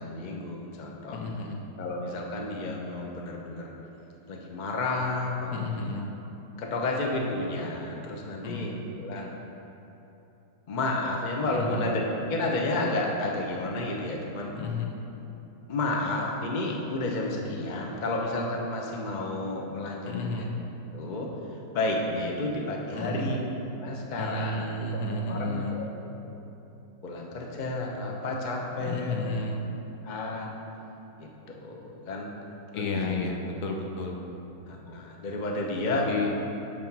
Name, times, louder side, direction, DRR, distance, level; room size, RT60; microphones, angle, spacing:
voice 1, 0.0-1.2 1.8-3.7 4.3-5.6 6.6-9.3 10.7-14.5 15.7-26.1 27.0-29.6 30.0-30.5 31.2-32.3 32.7-33.2 33.5-33.6 34.7-36.1, left 2 dB, 45° left, 0 dB, 0.6 m, -31 dB
voice 2, 1.1-1.6 5.5-6.0 8.4-8.7 11.5-11.8 14.5-15.0 20.1-20.5 22.9-23.4 24.2-25.8 28.8-29.6 32.7-34.2 35.9-36.3, left 2 dB, 70° left, 1 dB, 1.4 m, -32 dB
9.7 x 3.8 x 5.9 m, 3.0 s
omnidirectional pair, 1.9 m